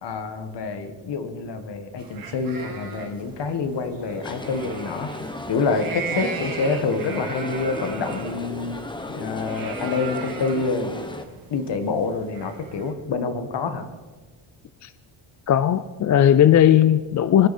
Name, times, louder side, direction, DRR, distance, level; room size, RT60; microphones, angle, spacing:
voice 1, 0.0-5.1 5.5-8.8 9.1-10.9 11.5-13.8, left 4 dB, 55° left, 8 dB, 1.6 m, -27 dB
sound 1, 2.0-12.9, right 5 dB, 45° right, 2.1 m, -38 dB
sound 2, 4.2-11.3, left 1 dB, 10° left, 0.9 m, -35 dB
voice 2, 15.5-17.5, left 10 dB, 40° left, 13 dB, 0.4 m, -17 dB
23.5 x 10.0 x 4.3 m, 1.3 s
cardioid pair, 140°, 49 cm